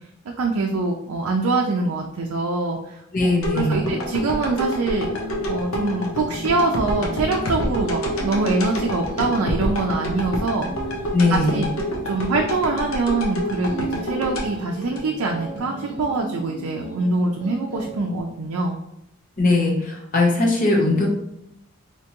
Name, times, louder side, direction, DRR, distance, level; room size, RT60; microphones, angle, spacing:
voice 1, 0.4-3.0 3.2-5.1 5.5-10.7 11.3-11.7 12.0-18.8, right 3 dB, 85° right, 1 dB, 0.4 m, -24 dB
voice 2, 3.1-3.9 11.1-11.7 19.4-21.1, left 2 dB, 40° left, -2 dB, 0.8 m, -20 dB
sound 1, 3.4-15.6 16.0-16.1, left 1 dB, 70° left, 0.7 m, -28 dB
sound 2, 3.6-18.2, right 1 dB, 20° right, 1.2 m, -36 dB
3.4 x 2.8 x 2.9 m, 0.80 s
head